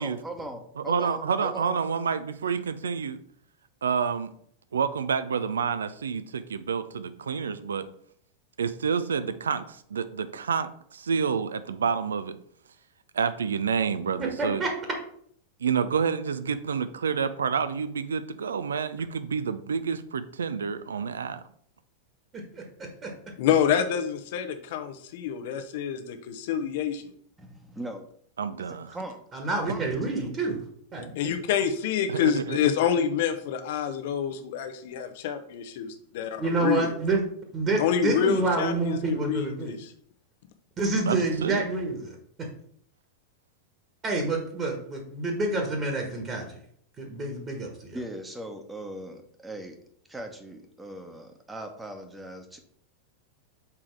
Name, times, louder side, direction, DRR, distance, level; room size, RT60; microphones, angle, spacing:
voice 1, 0.0-1.8 27.4-28.1 28.7-29.2 29.7-30.3 47.9-49.8 50.1-52.6, right 1 dB, 5° right, 5 dB, 1.1 m, -39 dB
voice 2, 0.8-3.2 3.8-4.3 4.7-7.9 8.6-12.4 13.1-14.6 15.6-21.4 28.4-29.0 29.6-29.7 32.1-32.7 41.1-41.7, right 6 dB, 70° right, 12 dB, 0.5 m, -28 dB
voice 3, 14.2-14.7 22.3-22.6 23.0-23.1 29.3-30.6 30.9-31.3 36.4-37.2 37.5-39.7 40.8-42.1 44.0-46.5 47.0-48.0, right 3 dB, 25° right, 2 dB, 1.5 m, -28 dB
voice 4, 23.4-27.0 31.2-36.9 37.8-39.8, left 8 dB, 50° left, 8 dB, 0.9 m, -27 dB
6.0 x 4.9 x 4.5 m, 0.64 s
figure-of-eight pair, 90°, 0 cm